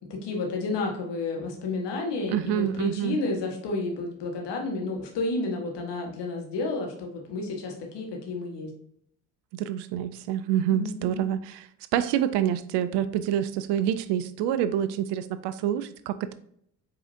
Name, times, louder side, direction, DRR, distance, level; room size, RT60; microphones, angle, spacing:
voice 1, 0.1-8.7 10.7-11.2, left 3 dB, 55° left, 1 dB, 1.6 m, -31 dB
voice 2, 2.3-3.2 9.5-11.7 11.9-16.3, right 10 dB, 60° right, 13 dB, 0.5 m, -27 dB
4.7 x 3.8 x 2.7 m, 0.70 s
hypercardioid pair, 45°, 49 cm